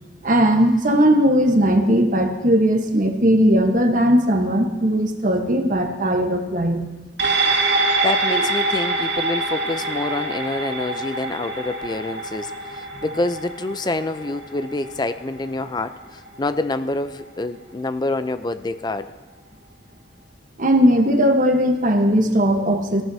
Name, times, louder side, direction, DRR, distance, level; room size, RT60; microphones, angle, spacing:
voice 1, 0.2-6.8 8.3-8.4 20.6-23.0, equal, 45° right, 5 dB, 1.2 m, -18 dB
sound 1, 7.2-15.9 16.3-16.4, right 2 dB, 70° right, 2.7 m, -25 dB
voice 2, 8.0-19.1, left 2 dB, 25° left, 12 dB, 0.5 m, -27 dB
19.0 x 14.5 x 2.8 m, 1.3 s
head